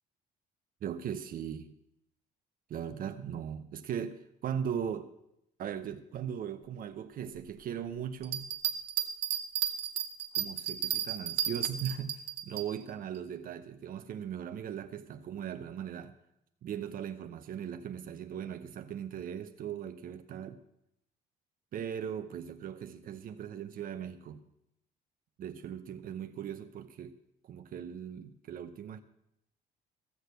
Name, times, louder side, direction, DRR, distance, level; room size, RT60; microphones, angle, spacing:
voice 1, 0.8-1.7 2.7-5.1 5.6-8.5 10.3-16.1 16.6-20.6 21.7-24.4 25.4-27.2 27.4-29.0, right 8 dB, 55° right, 0.9 m, -39 dB
sound 1, 8.2-12.7, right 10 dB, 85° right, 1.2 m, -33 dB
15.0 x 6.5 x 8.0 m
cardioid pair, 110°, 17 cm